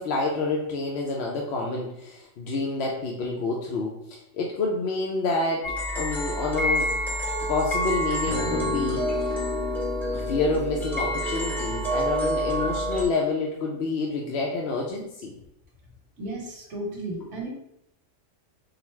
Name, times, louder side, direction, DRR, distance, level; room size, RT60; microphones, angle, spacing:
voice 1, 0.0-6.9 7.4-9.4 10.1-15.4, left 3 dB, 65° left, -2 dB, 0.8 m, -28 dB
sound 1, 5.6-13.0, equal, ahead, 0.9 m, -28 dB
sound 2, 8.3-12.8, left 5 dB, 85° left, 1.0 m, -34 dB
voice 2, 16.2-17.5, right 1 dB, 70° right, -2 dB, 1.4 m, -34 dB
3.9 x 2.0 x 4.3 m, 0.78 s
omnidirectional pair, 1.3 m